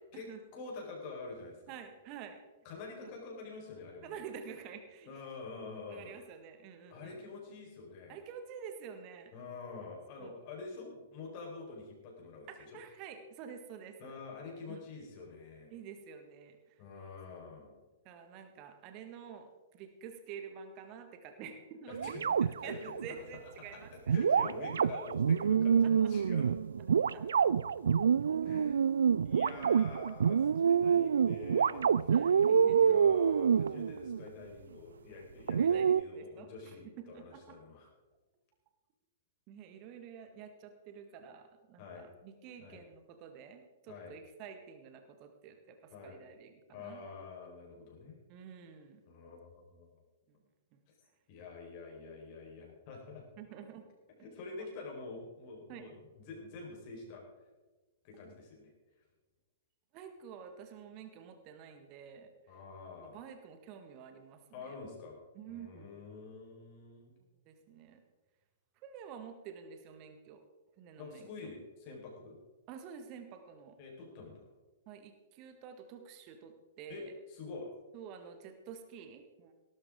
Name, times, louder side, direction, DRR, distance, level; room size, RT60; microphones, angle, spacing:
voice 1, 0.1-1.7 2.6-4.2 5.0-6.1 6.9-8.2 9.3-12.8 14.0-15.7 16.8-17.8 21.9-22.2 22.6-22.9 23.7-26.6 28.4-28.8 29.2-37.9 41.8-42.1 42.6-42.8 43.9-44.1 45.9-46.2 46.7-48.2 49.1-49.9 51.3-53.2 54.2-57.2 58.0-58.7 62.5-63.2 64.5-65.2 65.5-67.2 71.0-72.4 73.8-74.5 76.9-77.0 77.3-77.7, left 4 dB, 40° left, -1 dB, 4.6 m, -47 dB
voice 2, 1.7-2.4 3.0-3.1 4.0-5.1 5.9-7.2 8.1-9.3 10.2-10.4 12.5-14.2 14.7-14.8 15.7-16.8 17.3-17.5 18.1-24.1 25.8-26.1 27.0-27.7 29.6-29.7 30.2-30.3 32.1-33.1 35.6-35.9 36.2-37.6 39.5-47.0 48.3-49.0 50.3-50.4 50.7-50.8 53.4-53.9 54.6-54.7 55.7-55.9 58.2-58.3 59.9-62.6 63.1-64.8 65.3-65.9 67.5-68.0 68.8-70.4 70.8-71.5 72.7-73.8 74.9-77.1 77.9-79.5, right 7 dB, 35° right, 7 dB, 1.8 m, -49 dB
sound 1, 21.9-23.1 24.1-34.3 35.5-36.0, right 7 dB, 65° right, 0.3 m, -27 dB
18.0 x 13.0 x 3.8 m, 1.2 s
figure-of-eight pair, 105°, 0 cm